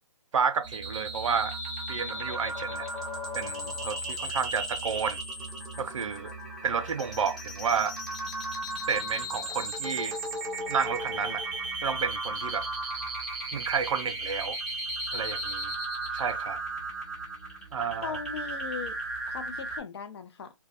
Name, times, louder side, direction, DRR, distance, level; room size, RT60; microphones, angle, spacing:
voice 1, 0.3-1.5 1.9-3.0 3.3-5.2 5.8-6.3 6.6-8.0 8.9-10.2 10.7-11.4 11.8-12.7 13.5-14.6 15.1-15.7 16.1-16.6 17.7-18.2, right 6 dB, 70° right, 0.5 m, -30 dB
sound 1, 0.6-19.8, right 1 dB, ahead, 0.6 m, -35 dB
voice 2, 18.0-19.0 19.3-20.5, left 6 dB, 50° left, 0.5 m, -38 dB
2.2 x 2.2 x 2.5 m
hypercardioid pair, 150°, 17 cm